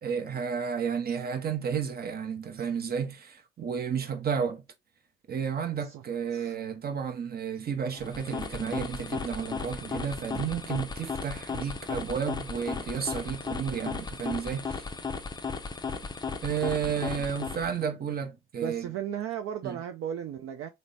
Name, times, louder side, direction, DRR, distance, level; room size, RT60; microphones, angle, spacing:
voice 1, 0.0-4.6 5.3-14.8 16.4-18.9 19.6-19.8, right 7 dB, 35° right, 0.8 m, -32 dB
sound 1, 7.9-17.9, left 5 dB, 15° left, 0.5 m, -36 dB
voice 2, 18.6-20.7, right 9 dB, 50° right, 0.5 m, -35 dB
3.1 x 2.1 x 3.9 m
hypercardioid pair, 70°, 29 cm